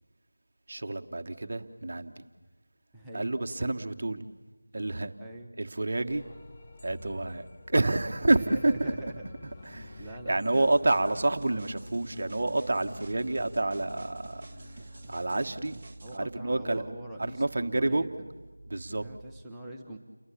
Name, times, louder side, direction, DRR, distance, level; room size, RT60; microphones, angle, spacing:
voice 1, 0.7-2.3 3.1-4.2 4.7-5.1 5.6-6.2 6.8-8.9 9.6-15.8 16.1-18.1 18.7-19.1, right 2 dB, 40° right, 1.4 m, -29 dB
voice 2, 2.9-3.4 5.2-5.5 8.3-9.3 10.0-10.9 16.0-18.3 19.0-20.0, right 1 dB, 5° right, 1.2 m, -43 dB
sound 1, 6.1-15.8, left 2 dB, 20° left, 1.2 m, -49 dB
sound 2, 10.5-16.2, right 2 dB, 20° right, 1.4 m, -52 dB
30.0 x 22.5 x 8.5 m
figure-of-eight pair, 170°, 0 cm